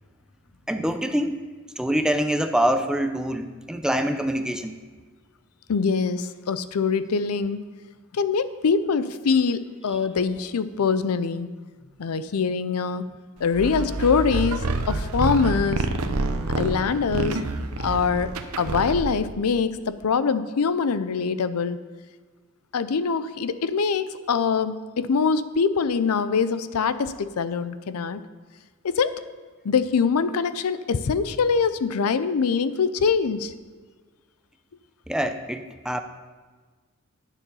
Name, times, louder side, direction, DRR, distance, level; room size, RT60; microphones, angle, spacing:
voice 1, 0.7-1.4 1.8-4.7 35.1-36.0, equal, 5° right, 7 dB, 0.5 m, -25 dB
voice 2, 5.7-7.7 8.1-11.5 12.0-13.1 13.4-16.0 16.6-17.4 17.8-18.3 18.6-21.8 22.7-28.2 28.8-29.2 29.6-33.5, left 5 dB, 85° left, 13 dB, 0.5 m, -24 dB
sound 1, 13.5-19.3, right 3 dB, 80° right, 0.7 m, -27 dB
9.9 x 6.9 x 5.4 m, 1.4 s
head